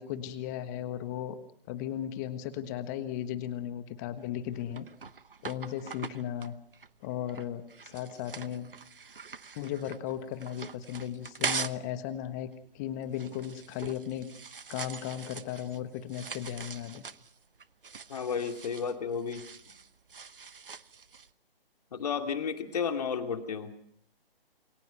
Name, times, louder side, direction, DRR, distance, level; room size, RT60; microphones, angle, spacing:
voice 1, 0.0-1.3 1.7-4.9 5.4-6.5 7.0-8.7 9.5-12.5 12.7-14.3 14.7-17.0, left 10 dB, 20° left, 12 dB, 1.4 m, -36 dB
sound 1, 4.2-11.9 12.2-21.3, right 5 dB, 65° right, 1.0 m, -42 dB
voice 2, 18.1-19.5 21.9-23.7, left 6 dB, 40° left, 5 dB, 2.7 m, -32 dB
28.0 x 24.0 x 5.8 m, 0.66 s
figure-of-eight pair, 140°, 30 cm